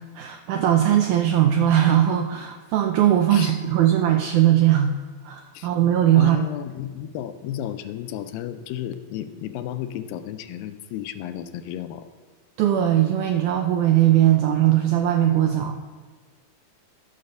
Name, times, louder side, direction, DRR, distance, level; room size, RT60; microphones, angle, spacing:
voice 1, 0.2-4.9 5.2-6.4 12.6-15.8, right 11 dB, 85° right, 4 dB, 1.7 m, -19 dB
voice 2, 6.2-12.1, left 11 dB, 80° left, 10 dB, 2.3 m, -33 dB
12.5 x 5.6 x 6.6 m, 1.4 s
omnidirectional pair, 4.2 m